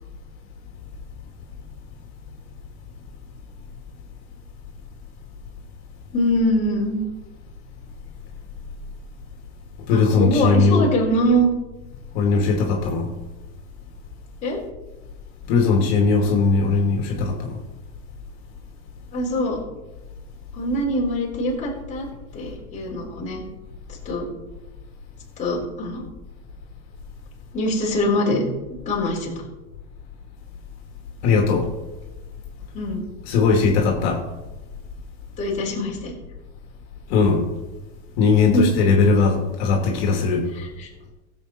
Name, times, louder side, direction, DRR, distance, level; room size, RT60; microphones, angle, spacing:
voice 1, 6.1-7.0 9.9-11.5 14.4-14.6 19.1-19.6 20.5-22.1 22.3-23.4 24.0-24.2 25.4-26.1 27.5-28.4 28.9-29.4 32.7-33.0 35.4-36.1 38.5-38.7 40.5-41.1, equal, 20° left, -4 dB, 4.0 m, -23 dB
voice 2, 9.9-10.9 12.1-13.1 15.5-17.6 31.2-31.7 33.3-34.2 37.1-37.4 38.2-40.5, left 4 dB, 55° left, 1 dB, 2.6 m, -19 dB
16.0 x 7.8 x 4.4 m, 1.1 s
supercardioid pair, 150°, 36 cm